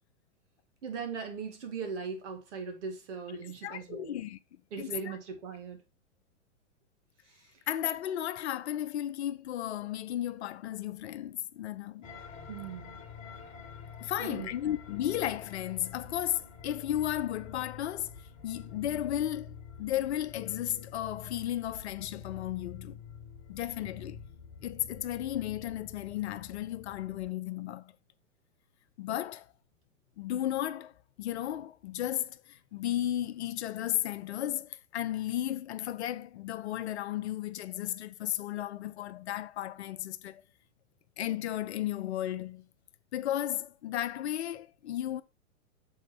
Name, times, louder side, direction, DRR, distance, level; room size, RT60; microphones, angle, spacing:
voice 1, 0.8-4.2 4.7-5.8 7.3-7.5 12.5-13.0 14.2-14.5, right 5 dB, 55° right, 2.3 m, -39 dB
voice 2, 3.6-4.4 4.8-5.2 7.7-12.1 14.0-18.1 18.4-23.0 23.5-24.2 24.6-27.9 29.0-29.5 30.2-30.9 31.2-40.4 41.2-42.7 43.1-45.2, left 12 dB, 55° left, 0.6 m, -34 dB
sound 1, 12.0-27.3, left 7 dB, 30° left, 1.4 m, -47 dB
6.8 x 3.7 x 4.4 m
hypercardioid pair, 115°, 41 cm